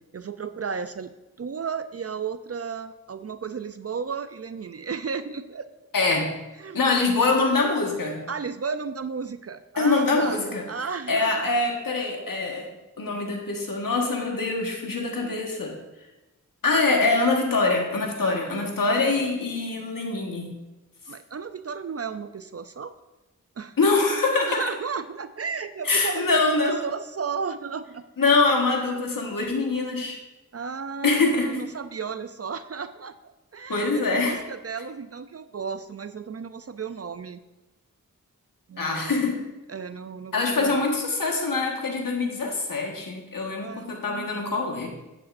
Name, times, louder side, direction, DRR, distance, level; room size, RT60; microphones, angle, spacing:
voice 1, 0.1-1.1 1.4-5.6 6.6-6.9 8.3-10.4 10.7-11.5 15.2-15.6 18.2-19.3 21.1-22.9 23.6-23.8 24.3-28.0 30.5-33.1 33.5-37.4 38.7-39.1 39.7-40.9 43.6-44.3, right 5 dB, 50° right, 11 dB, 0.4 m, -34 dB
voice 2, 5.9-6.3 6.7-8.2 9.8-10.6 11.1-12.7 13.0-15.7 16.6-20.6 23.8-24.6 25.8-26.8 28.2-30.2 31.0-31.7 33.7-34.4 38.8-39.4 40.3-44.9, left 3 dB, 90° left, 1 dB, 1.5 m, -24 dB
10.5 x 8.6 x 2.6 m, 1.0 s
wide cardioid pair, 55°, 32 cm